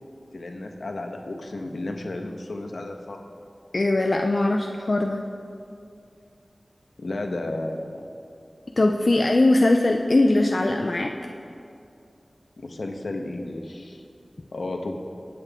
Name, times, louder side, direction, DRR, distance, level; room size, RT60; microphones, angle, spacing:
voice 1, 0.3-3.2 7.0-8.1 12.6-14.0 14.5-15.0, left 2 dB, 80° left, 3 dB, 1.4 m, -33 dB
voice 2, 3.7-5.2 8.8-11.1, left 2 dB, 55° left, 3 dB, 0.7 m, -20 dB
25.0 x 9.0 x 3.8 m, 2.5 s
wide cardioid pair, 45°, 0 cm